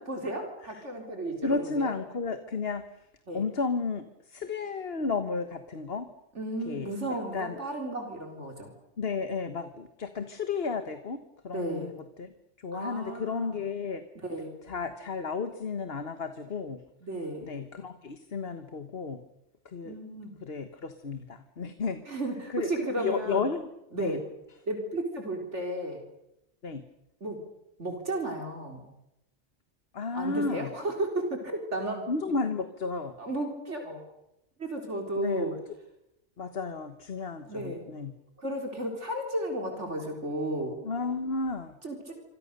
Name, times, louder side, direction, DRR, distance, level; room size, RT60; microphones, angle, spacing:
voice 1, 0.1-1.9 3.3-3.4 6.3-8.7 11.5-12.0 12.7-13.6 14.2-14.5 17.0-17.5 19.8-20.3 22.0-23.5 23.9-24.2 24.7-26.0 27.2-27.4 27.8-28.9 30.1-32.1 33.2-34.0 34.6-35.6 37.4-37.9 38.4-40.8 41.8-42.1, right 1 dB, 80° right, 3 dB, 4.4 m, -33 dB
voice 2, 1.4-2.8 3.3-4.0 4.3-6.1 6.7-6.9 7.3-7.6 9.0-11.9 12.2-12.3 12.6-14.0 14.7-16.8 17.4-19.2 19.7-20.0 20.4-22.0 22.5-23.6 23.9-24.2 26.6-26.8 29.9-30.7 32.1-33.1 35.2-35.5 36.4-38.1 40.8-41.7, left 4 dB, 60° left, 9 dB, 1.6 m, -32 dB
26.5 x 26.0 x 6.8 m, 0.86 s
omnidirectional pair, 1.2 m